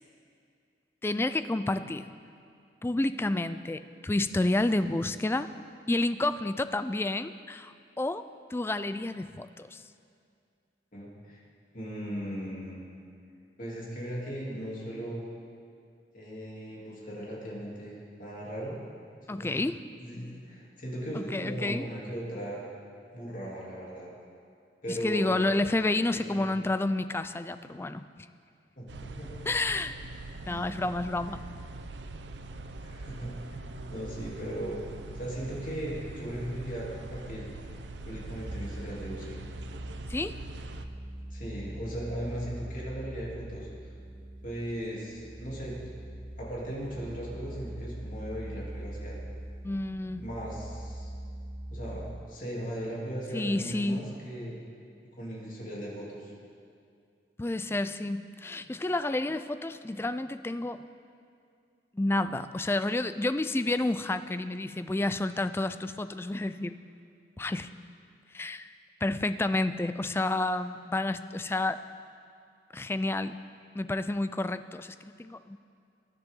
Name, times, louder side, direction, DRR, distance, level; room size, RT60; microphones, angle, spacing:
voice 1, 1.0-2.1 2.8-5.5 5.9-8.3 8.5-9.8 19.3-19.8 21.1-21.9 24.9-28.1 29.5-30.0 30.5-31.4 40.1-40.4 49.6-50.3 53.3-54.1 57.4-60.8 61.9-66.8 67.4-67.7 68.3-68.7 69.0-71.8 72.7-73.4 73.7-75.6, left 2 dB, 15° left, 12 dB, 0.3 m, -30 dB
voice 2, 10.9-11.4 11.7-12.8 13.6-15.2 16.1-18.8 19.3-19.5 20.0-22.6 23.1-24.1 24.8-25.3 26.1-26.5 28.8-29.5 30.4-30.9 32.8-34.8 35.1-37.5 38.1-39.4 41.3-43.7 44.4-45.8 46.4-49.2 50.2-51.1 51.7-54.5 55.1-56.3, equal, 45° left, -5 dB, 3.0 m, -38 dB
sound 1, 28.9-40.9, right 2 dB, 80° right, 0.6 m, -43 dB
sound 2, 38.3-52.2, right 1 dB, 25° right, 0.7 m, -42 dB
20.5 x 10.5 x 3.8 m, 2.4 s
head